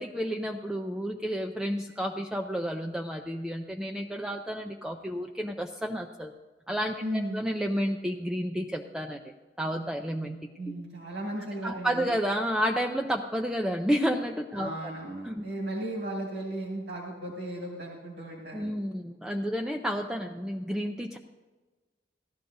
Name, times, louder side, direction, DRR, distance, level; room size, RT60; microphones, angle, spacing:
voice 1, 0.0-6.3 6.7-9.2 9.6-10.4 10.7-10.8 11.6-14.9 15.2-15.4 18.5-21.2, equal, 5° right, 1 dB, 0.4 m, -31 dB
voice 2, 7.0-7.4 10.6-12.1 14.6-18.7, right 1 dB, 75° right, -2 dB, 1.9 m, -35 dB
16.5 x 12.5 x 2.6 m, 1.3 s
head